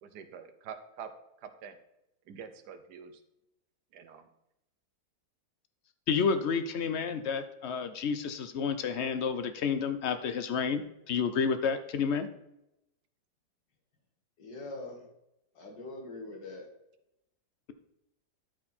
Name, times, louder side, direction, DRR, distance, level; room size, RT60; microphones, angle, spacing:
voice 1, 0.0-1.1 1.4-1.8 2.3-3.2 3.9-4.3, right 7 dB, 75° right, 10 dB, 1.4 m, -46 dB
voice 2, 6.1-12.3, left 6 dB, 65° left, 10 dB, 0.6 m, -30 dB
voice 3, 14.4-15.0 15.6-16.7, left 2 dB, 90° left, 1 dB, 2.4 m, -42 dB
12.0 x 4.5 x 4.2 m, 0.87 s
omnidirectional pair, 1.8 m